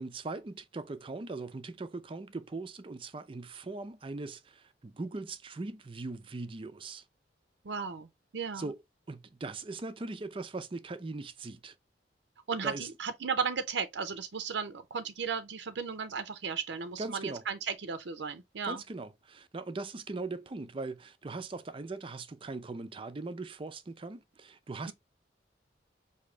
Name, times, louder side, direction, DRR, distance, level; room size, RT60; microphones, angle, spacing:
voice 1, 0.0-7.0 8.5-8.8 9.1-11.7 12.6-12.9 17.0-17.4 18.6-24.9, right 3 dB, 30° right, 0.4 m, -40 dB
voice 2, 7.6-8.1 8.3-8.7 12.5-18.8, right 6 dB, 80° right, 0.5 m, -35 dB
4.9 x 2.7 x 3.1 m
head